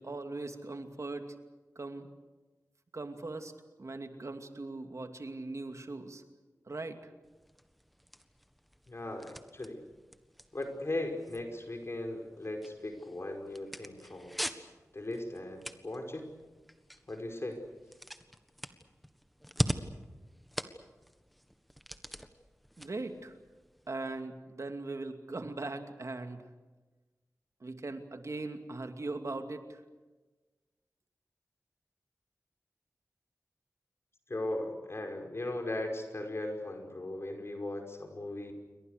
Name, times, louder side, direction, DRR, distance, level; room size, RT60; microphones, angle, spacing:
voice 1, 0.0-1.4 1.8-2.1 2.9-3.5 3.8-6.2 6.7-7.1 22.8-23.3 23.9-26.5 27.6-29.8, right 2 dB, 60° right, 6 dB, 2.5 m, -40 dB
sound 1, 7.2-24.2, equal, ahead, 1.6 m, -43 dB
voice 2, 8.9-9.8 10.5-14.4 14.9-16.2 17.1-17.6 34.3-38.5, left 1 dB, 45° left, 3 dB, 5.4 m, -38 dB
29.0 x 24.0 x 6.7 m, 1.2 s
wide cardioid pair, 70°, 6 cm